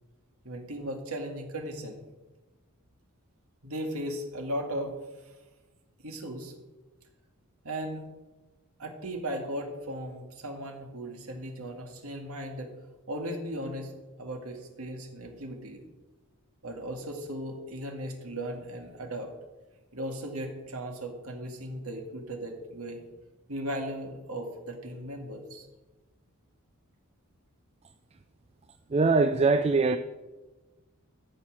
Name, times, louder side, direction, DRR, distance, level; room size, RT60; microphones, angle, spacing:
voice 1, 0.4-2.0 3.6-5.0 6.0-6.5 7.6-8.0 8.8-12.7 13.1-13.9 14.2-15.8 16.6-19.3 19.9-23.0 23.5-25.7, right 1 dB, 75° right, 2.1 m, -37 dB
voice 2, 28.9-30.0, right 4 dB, 30° right, 0.4 m, -22 dB
13.0 x 7.5 x 6.4 m
head